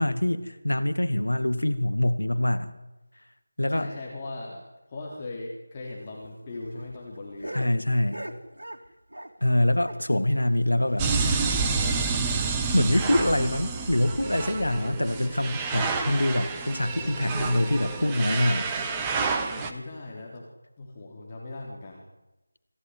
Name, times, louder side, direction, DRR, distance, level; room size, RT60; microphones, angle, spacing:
voice 1, 0.0-2.7 3.6-3.9 7.5-8.2 9.4-11.1 12.7-18.7, left 1 dB, 75° left, 12 dB, 2.2 m, -24 dB
voice 2, 3.6-4.6 4.9-7.6 19.5-20.5 20.8-22.0, left 2 dB, 20° left, -2 dB, 3.6 m, -39 dB
sound 1, 6.0-9.4 9.7-11.7 12.0-12.1 12.4-12.5 12.9-13.0 13.6-13.9 14.7-14.8, right 1 dB, 70° right, 3.3 m, -42 dB
sound 2, 11.0-19.7, right 4 dB, 10° right, 1.3 m, -29 dB
26.0 x 15.0 x 9.6 m, 1.0 s
figure-of-eight pair, 165°, 0 cm